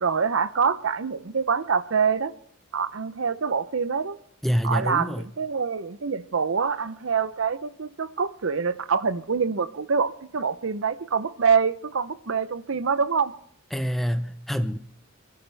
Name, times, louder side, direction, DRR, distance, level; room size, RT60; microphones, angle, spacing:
voice 1, 0.0-2.3 2.7-4.2 4.6-13.3, right 5 dB, 70° right, 0.6 m, -25 dB
voice 2, 4.4-5.3 13.7-14.8, equal, ahead, 0.7 m, -26 dB
27.5 x 11.5 x 3.3 m
head